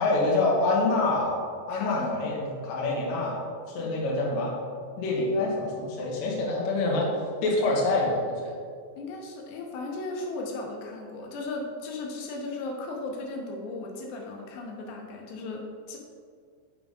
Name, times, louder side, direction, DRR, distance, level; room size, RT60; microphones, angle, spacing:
voice 1, 0.0-1.3 1.7-3.4 3.7-4.5 5.0-7.1 7.4-8.5, left 2 dB, 70° left, -3 dB, 1.7 m, -26 dB
voice 2, 1.7-2.3 3.8-3.9 9.0-16.0, left 2 dB, 90° left, 0 dB, 2.9 m, -36 dB
6.9 x 3.5 x 5.1 m, 2.1 s
omnidirectional pair, 4.9 m